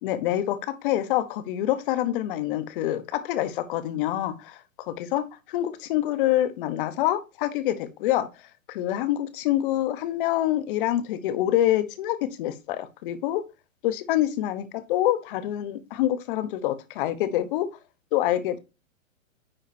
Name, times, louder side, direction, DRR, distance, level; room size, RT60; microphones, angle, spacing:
voice 1, 0.0-8.3 8.7-13.4 13.8-17.7 18.1-18.6, left 13 dB, 40° left, 1.1 m, -26 dB
9.7 x 4.9 x 2.7 m
hypercardioid pair, 145°, 42 cm